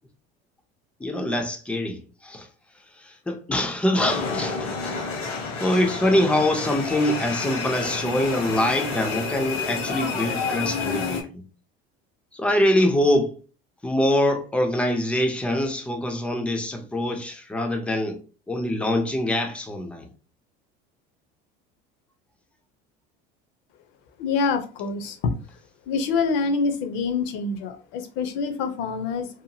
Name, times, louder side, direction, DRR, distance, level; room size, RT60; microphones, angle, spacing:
voice 1, 1.0-2.5 3.0-5.0 5.6-11.4 12.3-13.4 13.8-18.2 18.5-20.1, left 1 dB, 5° left, 0.4 m, -24 dB
sound 1, 3.9-11.2, left 4 dB, 80° left, 1.1 m, -29 dB
voice 2, 24.2-25.3 25.9-29.4, left 4 dB, 65° left, 0.6 m, -26 dB
2.8 x 2.2 x 2.7 m
cardioid pair, 145°, 20 cm